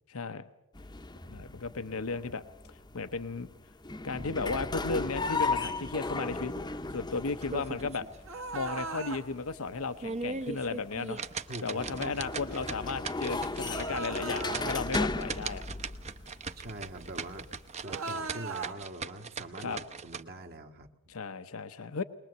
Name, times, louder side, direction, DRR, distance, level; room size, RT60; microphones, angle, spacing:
voice 1, 0.1-0.4 1.3-2.4 2.9-3.5 4.0-6.5 6.9-8.1 8.5-11.2 11.6-15.6 19.6-19.8 21.1-22.0, left 4 dB, 80° left, 10 dB, 0.8 m, -34 dB
sound 1, 0.7-17.8, left 3 dB, 20° left, 0.8 m, -37 dB
sound 2, 7.4-8.2 8.5-8.6 9.1-9.2 9.8-20.2, right 4 dB, 30° right, 0.7 m, -39 dB
sound 3, 8.2-9.2 13.7-14.7 17.8-18.7, right 4 dB, 70° right, 1.9 m, -38 dB
voice 2, 11.5-12.3 16.5-17.5 17.8-21.1, right 1 dB, 45° right, 4 dB, 1.5 m, -44 dB
22.5 x 20.5 x 7.9 m, 0.86 s
head